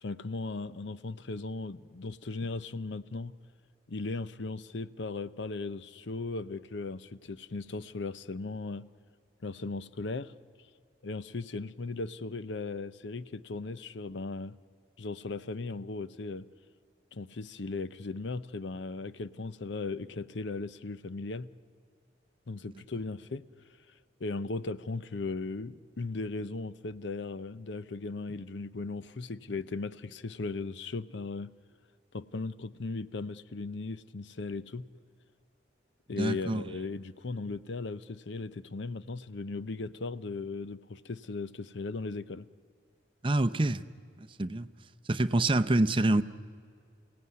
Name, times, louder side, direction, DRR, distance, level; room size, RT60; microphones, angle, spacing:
voice 1, 0.0-3.3 3.9-8.9 9.4-10.3 11.0-14.6 15.0-16.5 17.1-21.5 22.5-23.5 24.2-31.5 32.1-34.9 36.1-42.5, left 3 dB, 75° left, 15 dB, 0.7 m, -37 dB
voice 2, 36.2-36.6 43.2-43.8 44.2-44.7 45.1-46.2, right 2 dB, 25° right, 12 dB, 0.6 m, -26 dB
28.5 x 17.0 x 9.6 m, 2.3 s
head